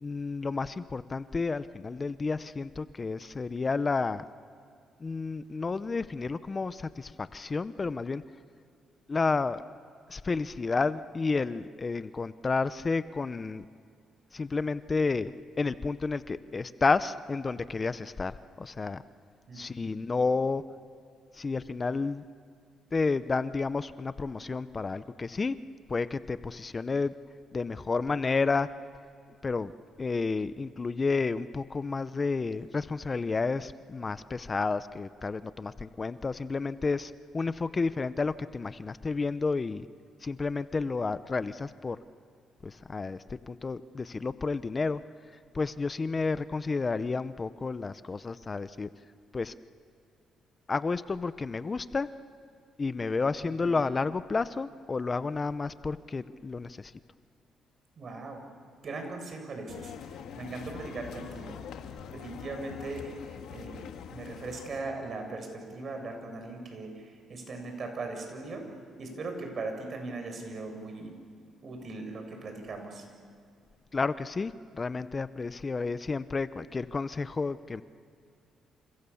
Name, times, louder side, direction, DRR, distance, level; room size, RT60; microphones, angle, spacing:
voice 1, 0.0-4.2 5.0-8.2 9.1-9.6 10.1-13.6 14.3-19.0 19.5-20.6 21.3-22.2 22.9-25.6 25.9-27.1 27.5-28.7 29.4-29.7 30.0-39.9 40.2-42.0 42.6-43.2 43.5-45.0 45.5-48.9 49.3-49.5 50.7-52.1 52.8-56.9 73.9-77.8, left 4 dB, 30° left, 14 dB, 0.7 m, -31 dB
voice 2, 19.5-19.9 53.4-53.8 58.0-58.4 58.8-61.6 62.1-68.7 69.0-71.1 71.6-73.0, right 3 dB, 50° right, 4 dB, 7.1 m, -39 dB
sound 1, 59.7-64.8, left 8 dB, 80° left, 1.8 m, -44 dB
29.0 x 28.5 x 7.1 m, 2.3 s
cardioid pair, 90°, 0 cm